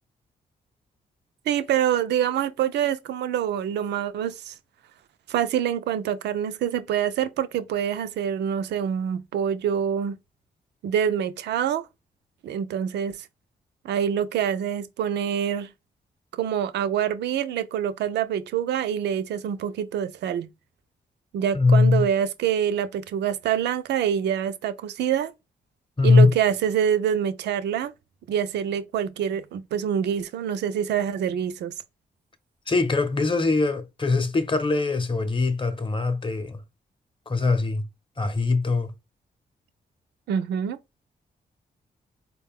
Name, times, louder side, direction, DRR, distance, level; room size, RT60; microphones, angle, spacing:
voice 1, 1.5-4.5 5.3-10.2 10.8-11.9 12.4-13.3 13.8-15.7 16.3-20.5 21.3-25.3 26.0-27.9 28.3-31.7 40.3-40.8, right 9 dB, 85° right, 0.5 m, -26 dB
voice 2, 21.5-22.1 26.0-26.3 32.7-36.6 37.3-37.8 38.2-38.9, left 3 dB, 30° left, 0.8 m, -21 dB
4.1 x 2.2 x 3.5 m
cardioid pair, 55°, 17 cm